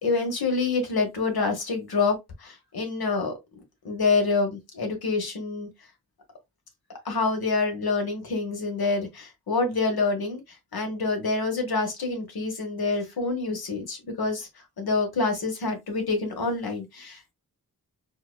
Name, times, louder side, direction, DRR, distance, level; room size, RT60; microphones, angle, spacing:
voice 1, 0.0-3.3 3.8-5.7 7.0-10.4 10.7-14.5 14.8-17.2, left 3 dB, 70° left, 1.4 m, -27 dB
4.4 x 2.4 x 2.2 m
cardioid pair, 60°, 38 cm